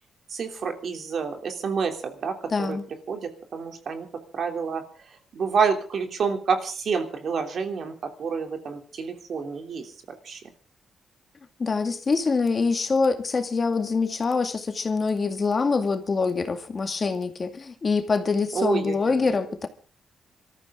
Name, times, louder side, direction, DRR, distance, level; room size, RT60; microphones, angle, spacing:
voice 1, 0.3-2.8 3.1-4.1 4.3-9.9 10.2-10.4 18.5-19.4, right 5 dB, 60° right, 3.1 m, -28 dB
voice 2, 2.5-2.8 11.6-19.7, left 4 dB, 35° left, 2.1 m, -25 dB
26.0 x 13.5 x 3.8 m
cardioid pair, 115°, 0 cm